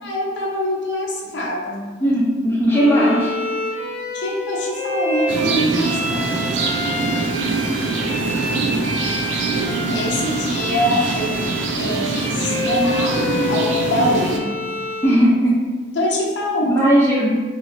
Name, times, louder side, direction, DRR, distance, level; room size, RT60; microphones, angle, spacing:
voice 1, 0.0-1.8 4.1-6.3 9.9-11.3 11.8-13.2 13.5-14.5 16.0-16.8, left 1 dB, 85° left, -2 dB, 0.6 m, -23 dB
voice 2, 2.0-3.3 15.0-15.6 16.6-17.4, equal, 15° left, -8 dB, 0.7 m, -17 dB
Bowed string instrument, 2.7-15.2, left 1 dB, 45° left, 0.9 m, -27 dB
sound 1, 5.3-14.4, right 3 dB, 90° right, 0.4 m, -23 dB
2.8 x 2.7 x 2.8 m, 1.4 s
head